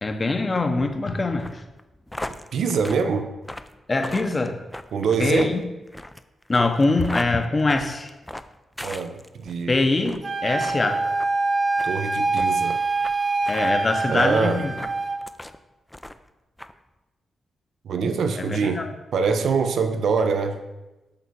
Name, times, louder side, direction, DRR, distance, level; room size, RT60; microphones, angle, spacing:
voice 1, 0.0-1.6 3.9-4.6 5.2-5.6 6.5-8.1 9.7-11.0 13.5-14.7 18.4-18.9, left 3 dB, 30° left, 6 dB, 0.7 m, -23 dB
sound 1, 1.4-9.6 10.0-10.3 10.6-10.8 11.2-11.3 11.8-11.9 12.4-12.5 13.0-13.1 13.4-13.7 14.2-14.3 14.8-15.6 15.9-16.3 16.6-16.7, left 1 dB, 10° left, 0.3 m, -37 dB
voice 2, 2.5-3.3 4.9-5.5 8.8-9.9 11.8-12.9 14.1-14.6 17.8-18.8 19.1-20.6, right 5 dB, 75° right, 7 dB, 0.6 m, -24 dB
Wind instrument woodwind instrument, 10.2-15.2, right 3 dB, 40° right, 0.8 m, -25 dB
6.8 x 3.4 x 6.2 m, 1.1 s
wide cardioid pair, 120°, 0 cm